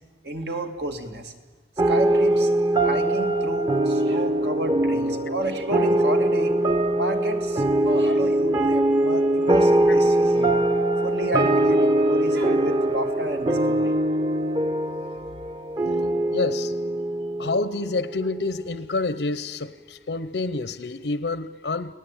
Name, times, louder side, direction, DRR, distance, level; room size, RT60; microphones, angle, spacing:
voice 1, 0.2-1.3 1.9-2.5 2.8-6.6 6.9-10.6 11.0-13.9, right 1 dB, 70° right, 2.5 m, -31 dB
sound 1, 1.8-18.6, right 1 dB, 25° right, 1.0 m, -22 dB
voice 2, 16.3-16.7 17.4-21.9, left 3 dB, 85° left, 0.8 m, -28 dB
29.5 x 19.0 x 9.0 m
head